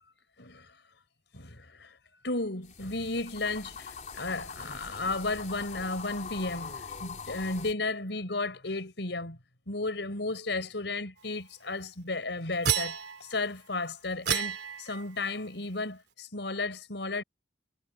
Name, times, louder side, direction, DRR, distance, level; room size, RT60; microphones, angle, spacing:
voice 1, 0.4-0.7 1.3-2.0 2.2-9.4 9.7-17.2, left 2 dB, 90° left, 4.7 m, -34 dB
sound 1, 2.6-7.7, left 5 dB, 45° left, 4.3 m, -42 dB
sound 2, 12.6-13.5 14.3-15.2, right 8 dB, 75° right, 2.7 m, -31 dB
head